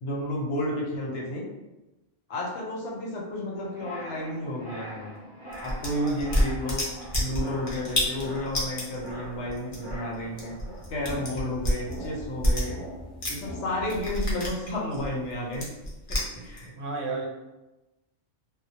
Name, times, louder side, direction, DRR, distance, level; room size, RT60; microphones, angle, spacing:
voice 1, 0.0-1.4 2.3-5.1 5.6-6.8 7.2-10.5 10.9-12.8 13.3-15.7 16.1-16.7, left 1 dB, 75° left, -2 dB, 0.9 m, -32 dB
sound 1, 3.6-14.5, equal, 15° right, 0.6 m, -42 dB
sound 2, 5.5-13.5 13.8-16.7, equal, 40° left, 0.5 m, -29 dB
voice 2, 16.8-17.3, right 3 dB, 80° right, 0 dB, 0.9 m, -32 dB
2.1 x 2.1 x 2.7 m, 1.0 s
omnidirectional pair, 1.3 m